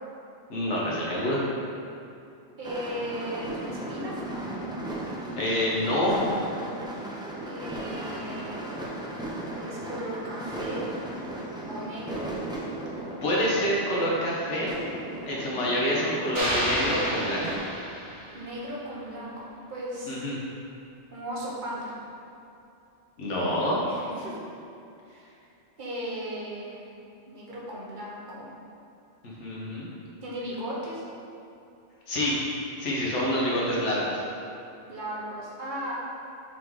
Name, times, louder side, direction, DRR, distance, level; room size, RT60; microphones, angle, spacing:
voice 1, 0.5-1.4 5.4-6.2 13.2-14.7 15.3-17.5 20.1-20.4 23.2-23.8 29.4-29.9 32.1-32.4 32.8-34.2, equal, 85° left, -6 dB, 1.3 m, -27 dB
sound 1, 2.6-17.6, right 1 dB, 5° right, 0.5 m, -36 dB
voice 2, 2.6-4.1 7.4-8.7 9.5-10.8 11.7-12.2 18.3-20.2 21.1-21.9 23.9-24.4 25.1-25.4 25.8-26.9 27.3-28.5 30.2-31.0 34.9-35.9, equal, 45° right, -6 dB, 1.2 m, -36 dB
sound 2, 16.4-18.5, equal, 90° right, 1.7 m, -30 dB
5.7 x 3.6 x 4.6 m, 2.7 s
omnidirectional pair, 1.2 m